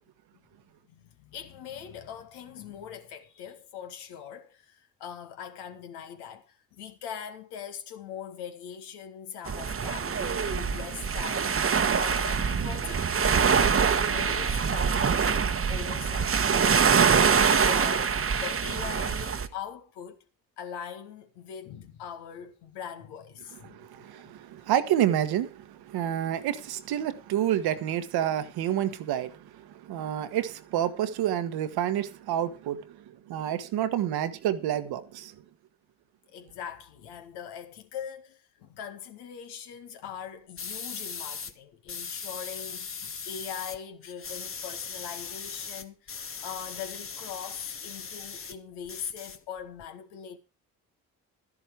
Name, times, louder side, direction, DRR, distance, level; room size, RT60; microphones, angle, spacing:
voice 1, 0.9-20.2 20.6-24.4 36.3-50.4, left 8 dB, 70° left, 1.8 m, -42 dB
sound 1, 9.5-19.5, right 6 dB, 30° right, 1.2 m, -24 dB
voice 2, 23.7-33.0 33.3-35.3, right 11 dB, 60° right, 1.3 m, -29 dB
sound 2, 40.6-41.5 41.9-43.8 44.0-48.6 48.9-49.9, left 6 dB, 30° left, 1.2 m, -39 dB
12.5 x 11.0 x 4.7 m
hypercardioid pair, 50°, 42 cm